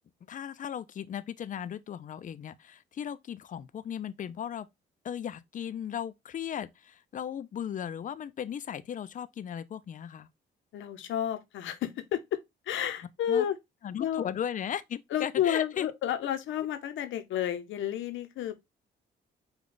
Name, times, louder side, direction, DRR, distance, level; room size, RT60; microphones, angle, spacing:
voice 1, 0.3-4.7 5.0-10.3 13.3-13.4 13.8-15.9, left 9 dB, 40° left, 0.4 m, -36 dB
voice 2, 10.7-12.4 12.6-13.6 14.0-14.3 15.1-18.5, left 10 dB, 75° left, 0.8 m, -31 dB
5.1 x 2.3 x 3.8 m
cardioid pair, 90°, 20 cm